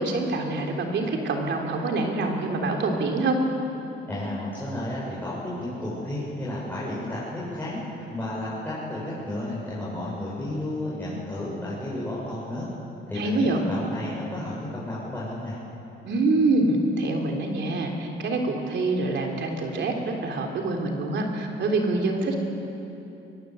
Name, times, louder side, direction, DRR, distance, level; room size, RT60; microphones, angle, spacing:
voice 1, 0.0-3.4 13.2-13.6 16.0-22.4, right 2 dB, 65° right, 2 dB, 3.6 m, -25 dB
voice 2, 4.0-7.8 8.1-12.6 13.1-15.6, left 1 dB, 10° left, -9 dB, 7.6 m, -32 dB
22.5 x 20.5 x 8.0 m, 2.9 s
cardioid pair, 90°, 20 cm